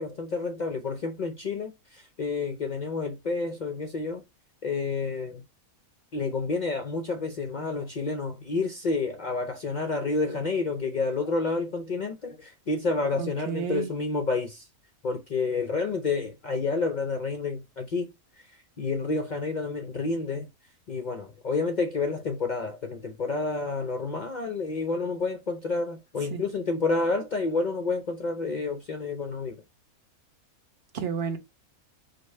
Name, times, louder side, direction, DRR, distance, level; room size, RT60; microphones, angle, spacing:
voice 1, 0.0-4.2 4.6-5.4 6.1-14.7 15.0-18.1 18.8-20.5 20.9-29.5, left 3 dB, 60° left, 0.4 m, -29 dB
voice 2, 13.2-13.9 26.3-26.4 30.9-31.4, right 7 dB, 50° right, 1.1 m, -31 dB
5.2 x 2.2 x 4.1 m
omnidirectional pair, 1.5 m